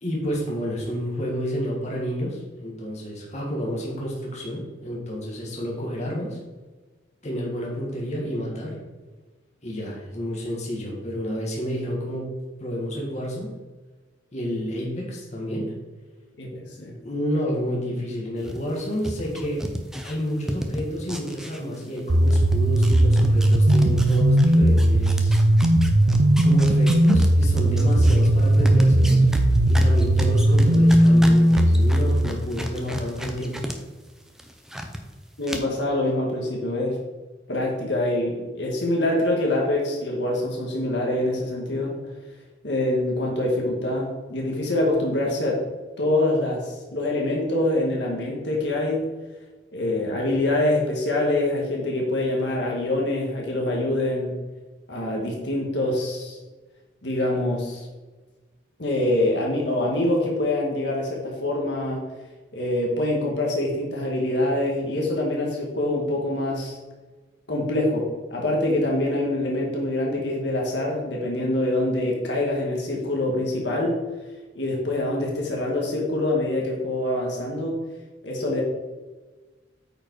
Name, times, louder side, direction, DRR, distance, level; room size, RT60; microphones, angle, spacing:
voice 1, 0.0-6.4 7.2-8.8 9.6-12.3 12.6-13.5 14.3-15.7 17.0-19.6 20.0-25.4 26.4-29.2 29.7-33.5, equal, 35° left, -3 dB, 1.8 m, -30 dB
voice 2, 16.4-17.0 35.4-37.0 37.5-42.0 42.6-45.6 46.0-49.0 49.7-54.4 54.9-56.4 57.0-57.9 58.8-62.1 62.5-66.8 67.5-74.0 74.6-77.8 78.2-78.6, left 1 dB, 65° left, -2 dB, 1.7 m, -25 dB
sound 1, 18.4-22.0 22.3-33.8 34.1-35.0 35.4-35.6, equal, 5° right, 0.7 m, -33 dB
sound 2, 22.1-32.2, right 1 dB, 55° right, 0.6 m, -17 dB
8.7 x 4.9 x 4.7 m, 1.3 s
head